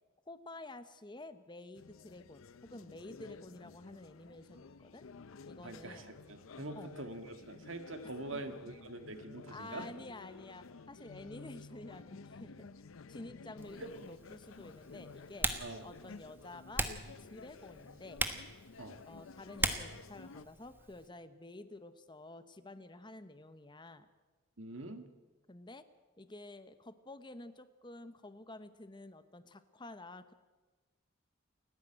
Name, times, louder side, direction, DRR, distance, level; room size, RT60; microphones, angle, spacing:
voice 1, 0.3-5.1 5.5-6.1 6.7-6.9 8.2-8.4 9.5-12.7 13.1-15.5 15.8-16.9 17.2-18.2 19.1-24.1 25.5-25.9 26.2-30.3, left 2 dB, 20° left, 11 dB, 0.9 m, -50 dB
sound 1, 1.7-20.5, left 4 dB, 80° left, 0.6 m, -53 dB
voice 2, 5.6-9.9 13.8-13.9 15.6-15.8 18.8-19.0 24.6-25.1, right 2 dB, 70° right, 7 dB, 1.8 m, -44 dB
Typing, 13.6-21.1, right 2 dB, 10° right, 1.2 m, -40 dB
29.0 x 10.5 x 8.9 m, 1.3 s
head